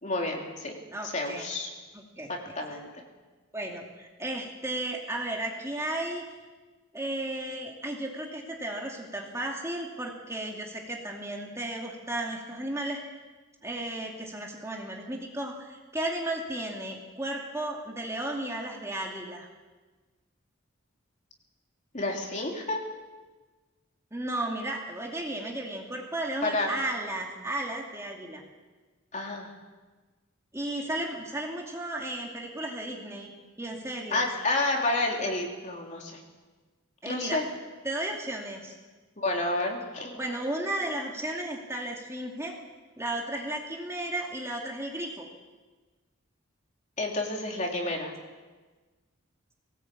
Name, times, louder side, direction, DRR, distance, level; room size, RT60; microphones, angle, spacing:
voice 1, 0.0-0.7 1.1-1.7 2.3-2.9 21.9-22.8 26.4-26.7 29.1-29.5 34.1-36.2 37.1-37.4 39.2-40.3 47.0-48.1, left 2 dB, 35° left, 0 dB, 3.5 m, -30 dB
voice 2, 0.9-1.4 1.9-2.8 3.5-6.2 6.9-13.0 13.6-19.5 24.1-28.4 30.5-33.3 33.6-34.2 37.0-37.4 37.8-38.7 40.2-42.6 43.0-45.3, right 1 dB, 15° right, 0 dB, 2.5 m, -34 dB
22.0 x 18.0 x 8.6 m, 1.3 s
head